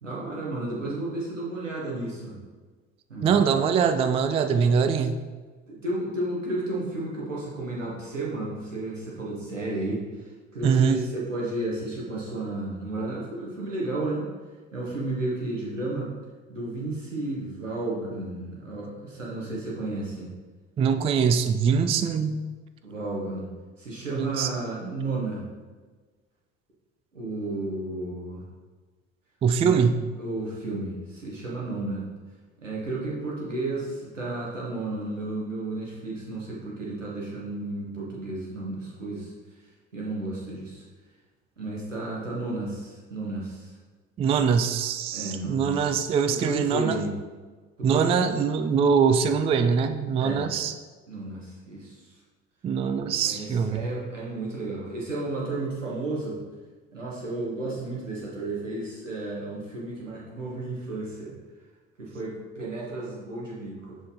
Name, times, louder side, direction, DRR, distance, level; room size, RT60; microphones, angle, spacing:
voice 1, 0.0-2.4 3.1-3.4 4.4-4.7 5.7-14.3 14.7-16.1 16.5-20.3 22.8-23.5 23.8-25.4 27.1-28.4 29.6-32.1 32.6-39.3 39.9-40.8 41.6-43.8 45.1-45.9 46.3-47.1 47.8-48.4 50.2-50.5 51.1-52.2 53.2-56.4 56.9-61.3 62.0-64.0, right 2 dB, 85° right, -4 dB, 1.4 m, -33 dB
voice 2, 3.2-5.2 10.6-11.0 20.8-22.4 24.2-24.5 29.4-30.0 44.2-47.0 47.8-50.7 52.6-53.9, right 6 dB, 15° right, 9 dB, 0.3 m, -23 dB
6.4 x 4.9 x 3.8 m, 1.4 s
figure-of-eight pair, 55°, 37 cm